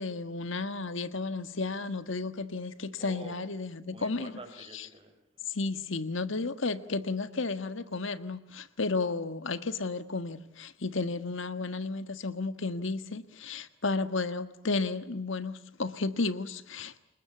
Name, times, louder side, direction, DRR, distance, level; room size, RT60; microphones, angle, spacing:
voice 1, 0.0-4.3 4.7-4.9 5.5-17.0, left 3 dB, 70° left, 11 dB, 1.5 m, -33 dB
voice 2, 3.0-3.4 3.9-5.5, right 2 dB, 25° right, 7 dB, 4.1 m, -48 dB
29.0 x 20.5 x 8.3 m, 0.80 s
head